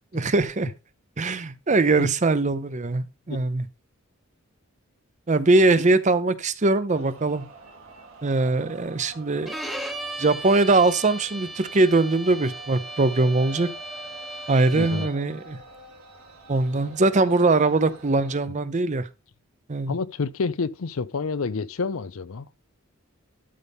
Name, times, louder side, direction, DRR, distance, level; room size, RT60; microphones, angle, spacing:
voice 1, 0.1-0.7 1.2-3.7 5.3-7.4 8.2-9.5 10.2-13.7 14.5-15.6 16.5-19.1 19.7-20.0, right 3 dB, 35° right, 0.6 m, -21 dB
sound 1, 6.9-18.5, right 3 dB, 80° right, 2.8 m, -46 dB
Bowed string instrument, 9.5-15.3, right 1 dB, ahead, 0.9 m, -37 dB
voice 2, 14.7-15.1 19.9-22.5, left 4 dB, 80° left, 0.6 m, -28 dB
12.5 x 5.4 x 3.5 m
head